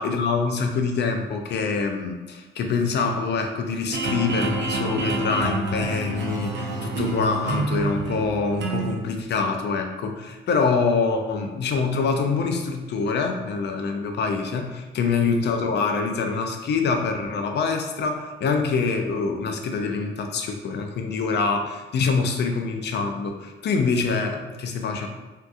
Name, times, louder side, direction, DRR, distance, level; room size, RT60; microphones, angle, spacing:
voice 1, 0.0-25.1, left 4 dB, 60° left, 4 dB, 0.5 m, -25 dB
sound 1, 3.9-8.9, right 2 dB, 65° right, 0.7 m, -28 dB
3.6 x 2.7 x 2.4 m, 1.2 s
cardioid pair, 90°, 20 cm